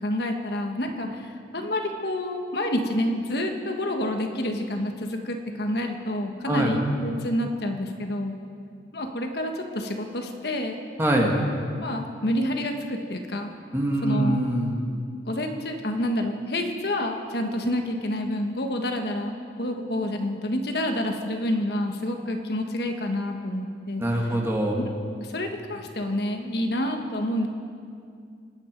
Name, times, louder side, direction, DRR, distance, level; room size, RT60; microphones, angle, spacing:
voice 1, 0.0-8.3 8.9-10.8 11.8-13.5 14.0-14.5 15.3-24.4 25.2-27.5, left 1 dB, 60° left, 4 dB, 1.3 m, -28 dB
voice 2, 11.0-11.4 13.7-14.8 24.0-24.8, right 1 dB, 15° right, -1 dB, 1.9 m, -23 dB
26.0 x 9.8 x 5.2 m, 2.3 s
head